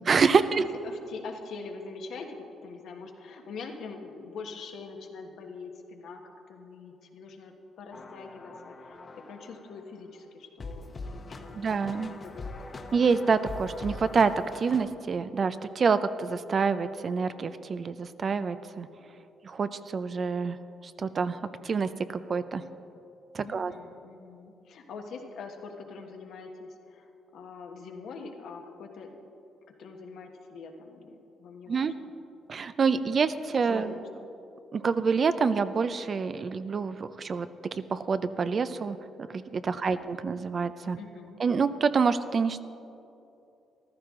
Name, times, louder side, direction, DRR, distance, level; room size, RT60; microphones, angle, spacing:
voice 1, 0.0-0.6 11.5-12.1 12.9-18.9 19.4-20.6 21.0-22.6 23.3-23.7 31.7-31.9 32.5-33.9 34.7-39.0 39.3-41.0 41.4-42.6, right 5 dB, 45° right, 13 dB, 0.5 m, -27 dB
voice 2, 0.6-12.0 12.2-12.6 23.4-29.1 29.8-32.1 33.6-34.3 39.8-40.1 41.0-41.4, left 4 dB, 70° left, 3 dB, 1.3 m, -44 dB
sound 1, 7.9-10.0 10.6-14.9, left 3 dB, 35° left, 1.0 m, -42 dB
14.5 x 13.0 x 3.7 m, 2.8 s
cardioid pair, 90°, 0 cm